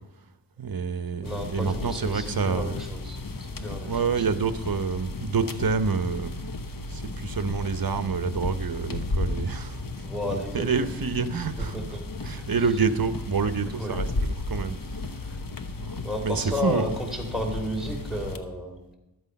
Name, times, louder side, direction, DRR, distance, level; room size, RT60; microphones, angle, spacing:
voice 1, 0.6-2.7 3.8-6.3 6.9-9.8 10.5-12.0 12.2-14.8 15.8-15.9 16.2-17.0, right 5 dB, 55° right, 12 dB, 0.9 m, -27 dB
sound 1, 1.2-18.4, left 2 dB, 50° left, 1.0 m, -34 dB
voice 2, 1.2-3.2 3.6-4.3 10.0-11.0 11.6-12.0 12.4-12.8 13.7-14.0 15.2-15.4 16.0-18.8, left 1 dB, ahead, 0 dB, 3.2 m, -33 dB
12.5 x 8.0 x 5.3 m, 0.95 s
wide cardioid pair, 45°, 42 cm